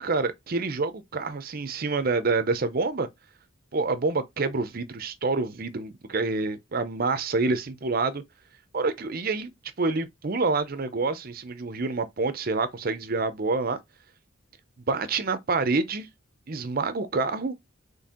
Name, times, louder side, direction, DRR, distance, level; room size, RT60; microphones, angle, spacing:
voice 1, 0.0-3.1 3.7-8.2 8.7-9.5 9.8-13.8 14.9-16.1 16.5-17.5, right 3 dB, 45° right, 0.6 m, -27 dB
4.3 x 3.4 x 3.6 m
head